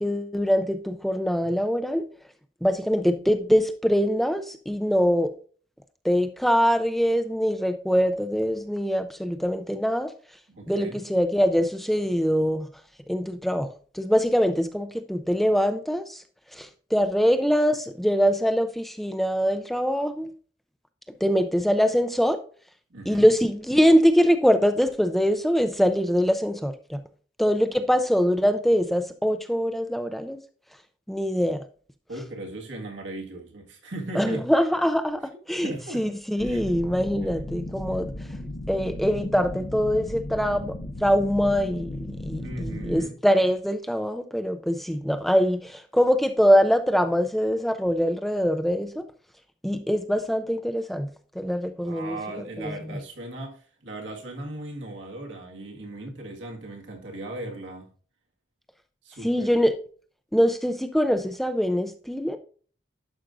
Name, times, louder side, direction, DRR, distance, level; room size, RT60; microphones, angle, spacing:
voice 1, 0.0-2.0 2.6-5.3 6.0-10.1 10.7-12.7 13.1-13.7 13.9-16.2 16.5-20.3 21.2-22.4 23.1-27.0 27.4-30.4 31.1-31.6 34.2-35.2 35.5-38.1 38.7-49.0 49.6-51.1 51.4-52.7 59.2-59.7 60.3-62.4, equal, ahead, 0.4 m, -23 dB
voice 2, 10.5-11.0 22.9-23.3 32.1-34.5 35.6-36.0 36.4-36.6 37.2-37.3 42.4-43.2 51.8-57.9 59.0-59.6, right 1 dB, 90° right, 1.8 m, -37 dB
sound 1, 36.4-43.0, left 1 dB, 85° left, 1.1 m, -36 dB
11.5 x 5.1 x 2.5 m
head